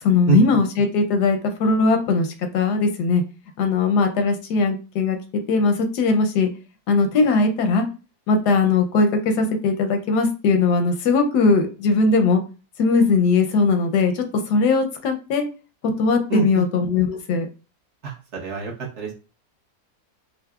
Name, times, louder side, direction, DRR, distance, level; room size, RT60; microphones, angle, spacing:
voice 1, 0.0-3.2 3.6-5.2 5.5-6.5 6.9-7.9 8.3-12.4 12.8-15.5 16.0-17.5, left 4 dB, 85° left, 6 dB, 1.2 m, -19 dB
voice 2, 16.3-16.6 18.0-18.1 18.4-19.1, right 9 dB, 55° right, -1 dB, 1.0 m, -25 dB
5.5 x 2.0 x 2.3 m, 0.34 s
omnidirectional pair, 1.7 m